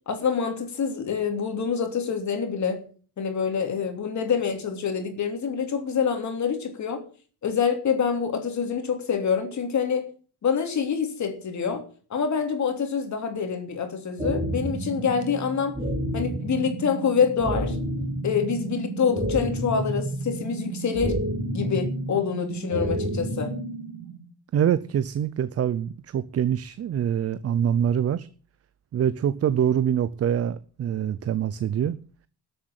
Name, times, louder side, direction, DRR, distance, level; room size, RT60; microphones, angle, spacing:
voice 1, 0.1-2.8 3.2-7.0 7.4-10.1 10.4-11.8 12.1-15.7 16.1-17.8 18.2-21.2 21.5-23.5, left 6 dB, 45° left, 3.1 m, -26 dB
sound 1, 14.2-24.2, right 1 dB, 15° right, 5.1 m, -30 dB
voice 2, 24.5-28.3 28.9-32.0, right 9 dB, 35° right, 0.6 m, -25 dB
13.0 x 8.0 x 8.9 m
cardioid pair, 145°, 40 cm